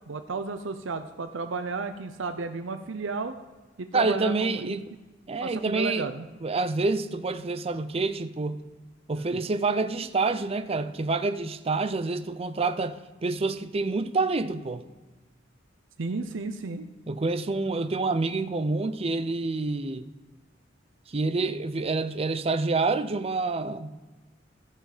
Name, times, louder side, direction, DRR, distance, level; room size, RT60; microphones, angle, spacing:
voice 1, 0.1-3.3 3.8-4.8 5.4-6.3 9.3-9.4 16.0-16.9, right 4 dB, 80° right, 0.6 m, -33 dB
voice 2, 3.9-4.9 5.3-6.1 6.4-8.6 9.1-14.8 17.1-20.1 21.1-24.0, right 3 dB, 30° right, 0.5 m, -27 dB
15.0 x 5.8 x 5.0 m
head